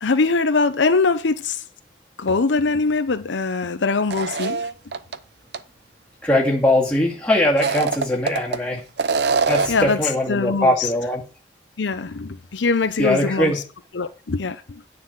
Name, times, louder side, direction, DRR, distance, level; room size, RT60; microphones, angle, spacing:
voice 1, 0.0-1.6 2.2-4.7 9.7-10.0 10.3-10.9 11.8-13.6 13.9-14.8, left 4 dB, 80° left, 0.7 m, -22 dB
sound 1, 4.1-5.2 5.5-5.6 7.5-8.6 9.0-9.9, right 4 dB, 60° right, 0.6 m, -23 dB
voice 2, 6.2-8.8 9.5-11.2 13.0-13.6, left 1 dB, 5° left, 2.1 m, -20 dB
9.6 x 4.2 x 7.4 m
head